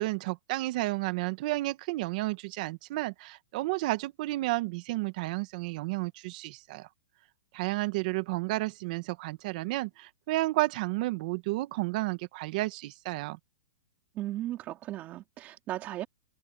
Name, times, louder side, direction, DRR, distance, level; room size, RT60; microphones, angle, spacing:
voice 1, 0.0-6.9 7.5-13.4, right 20 dB, 45° right, 1.2 m, -31 dB
voice 2, 14.2-16.1, right 14 dB, 25° right, 3.6 m, -36 dB
hypercardioid pair, 155°, 6 cm